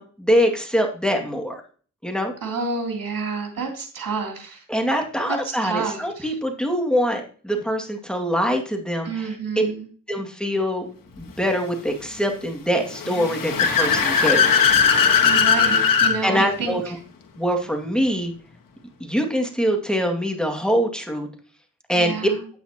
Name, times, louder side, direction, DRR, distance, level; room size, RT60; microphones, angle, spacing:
voice 1, 0.0-1.6 2.0-2.3 4.7-9.3 9.6-9.7 10.1-10.9 11.2-14.5 16.2-17.0 17.4-18.3 19.0-21.3 21.9-22.1, equal, ahead, 3 dB, 2.1 m, -23 dB
voice 2, 2.4-4.6 5.2-6.3 9.0-9.9 15.2-16.9 21.9-22.4, right 4 dB, 75° right, 0 dB, 3.0 m, -29 dB
Car / Accelerating revving vroom, 12.9-16.2, left 6 dB, 75° left, 1.4 m, -18 dB
9.0 x 8.7 x 2.9 m, 0.41 s
cardioid pair, 55°, 34 cm